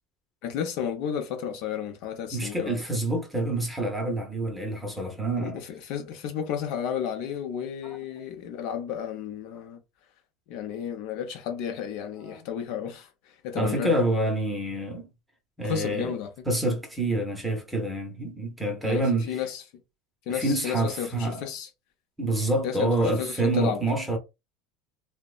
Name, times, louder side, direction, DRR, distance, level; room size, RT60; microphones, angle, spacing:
voice 1, 0.4-2.8 5.4-9.8 10.5-14.0 15.6-16.3 18.8-19.6 20.3-21.7 22.6-23.8, left 8 dB, 60° left, 0.6 m, -32 dB
voice 2, 2.3-5.6 12.2-12.4 13.6-15.1 15.6-16.1 16.5-19.4 20.3-21.4 22.2-24.2, right 1 dB, 5° right, 0.8 m, -27 dB
2.8 x 2.1 x 2.3 m
supercardioid pair, 135°, 0 cm